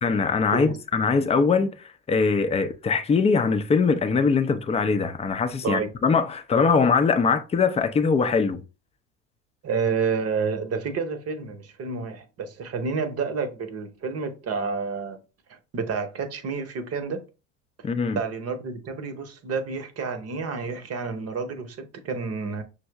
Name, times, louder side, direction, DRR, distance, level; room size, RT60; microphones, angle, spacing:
voice 1, 0.0-8.6 17.8-18.2, left 5 dB, 15° left, 0.4 m, -22 dB
voice 2, 9.6-15.2 15.7-17.2 18.1-22.6, right 5 dB, 40° right, 0.8 m, -29 dB
6.0 x 2.0 x 3.4 m
hypercardioid pair, 75°, 39 cm